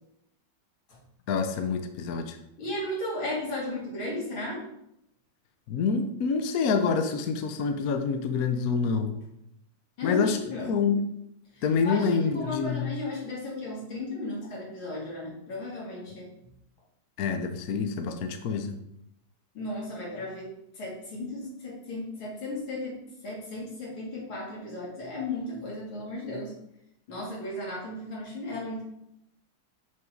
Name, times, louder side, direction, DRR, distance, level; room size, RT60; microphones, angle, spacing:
voice 1, 1.3-2.4 5.7-9.2 10.0-10.4 10.7-11.1 11.6-12.9 17.2-18.8, left 5 dB, 65° left, 7 dB, 0.9 m, -27 dB
voice 2, 2.6-4.6 10.0-10.8 11.5-16.3 19.5-23.0 23.2-26.5 27.1-28.8, left 2 dB, 80° left, -4 dB, 3.2 m, -35 dB
6.1 x 5.6 x 4.5 m, 0.79 s
omnidirectional pair, 2.2 m